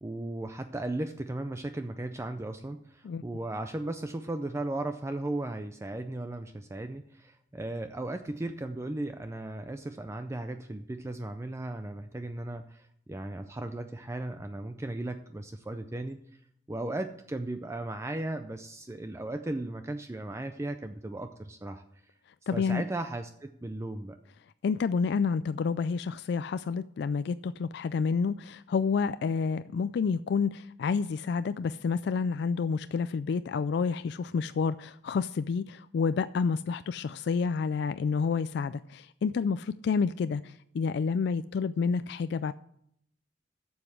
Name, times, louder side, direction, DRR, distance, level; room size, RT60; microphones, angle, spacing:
voice 1, 0.0-16.2 16.7-21.8 22.5-24.2, right 2 dB, 15° right, 0.4 m, -36 dB
voice 2, 22.5-22.8 24.6-42.5, left 5 dB, 65° left, 0.3 m, -29 dB
7.7 x 7.1 x 7.4 m
head